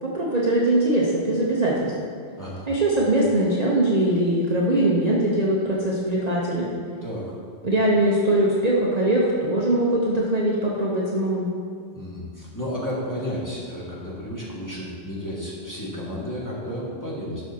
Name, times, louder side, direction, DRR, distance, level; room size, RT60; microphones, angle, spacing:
voice 1, 0.0-1.9 2.7-6.7 7.6-11.5, right 1 dB, 40° right, -5 dB, 0.9 m, -21 dB
voice 2, 2.4-2.7 7.0-7.3 11.9-17.4, equal, 15° left, -7 dB, 1.8 m, -32 dB
12.0 x 6.2 x 2.8 m, 2.3 s
omnidirectional pair, 1.2 m